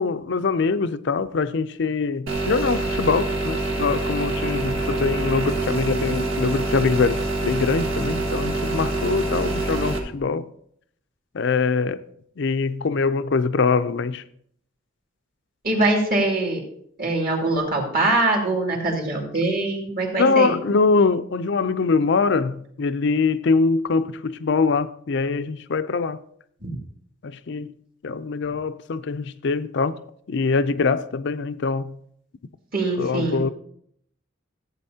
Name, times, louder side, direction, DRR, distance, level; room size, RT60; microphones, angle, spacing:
voice 1, 0.0-10.5 11.3-12.0 12.4-14.2 20.2-26.2 27.2-27.7 28.0-30.0 30.3-32.0 33.0-33.5, left 4 dB, 60° left, 0.5 m, -23 dB
sound 1, 2.3-10.0, right 2 dB, 80° right, 1.8 m, -25 dB
voice 2, 15.6-16.6 17.0-20.5 26.6-26.8 32.7-33.4, right 2 dB, 50° right, 2.5 m, -23 dB
15.0 x 8.4 x 2.8 m
head